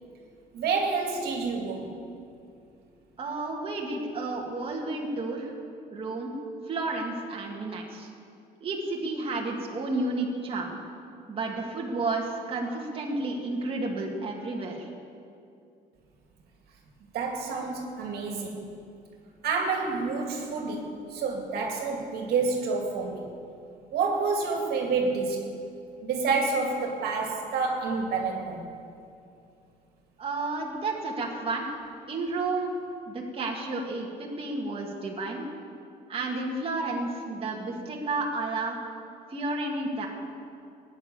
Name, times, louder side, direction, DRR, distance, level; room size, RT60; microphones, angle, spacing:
voice 1, 0.5-1.9 17.1-18.6 19.4-23.3 23.9-25.5 26.0-28.6, right 4 dB, 70° right, 1 dB, 2.3 m, -28 dB
voice 2, 3.2-5.5 5.9-6.3 6.7-8.1 8.6-10.8 11.3-14.9 30.2-31.7 32.1-32.7 33.1-35.5 36.1-38.8 39.3-40.1, right 2 dB, 35° right, -2 dB, 2.2 m, -31 dB
16.0 x 10.0 x 7.0 m, 2.5 s
cardioid pair, 110°, 17 cm